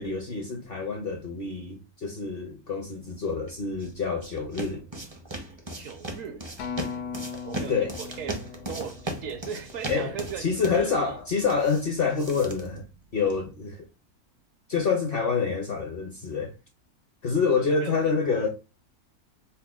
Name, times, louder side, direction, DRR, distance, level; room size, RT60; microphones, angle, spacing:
voice 1, 0.0-4.8 7.7-8.0 9.9-12.8 13.1-13.9 14.7-16.5 17.2-18.5, left 5 dB, 55° left, 0.7 m, -27 dB
sound 1, 3.5-13.5, right 1 dB, 35° right, 0.4 m, -38 dB
voice 2, 5.7-6.5 7.4-8.4 8.7-11.2 17.6-18.5, right 7 dB, 70° right, 0.9 m, -38 dB
Acoustic guitar, 6.6-11.0 11.7-11.8, left 6 dB, 85° left, 1.1 m, -39 dB
5.4 x 2.1 x 2.3 m
omnidirectional pair, 1.6 m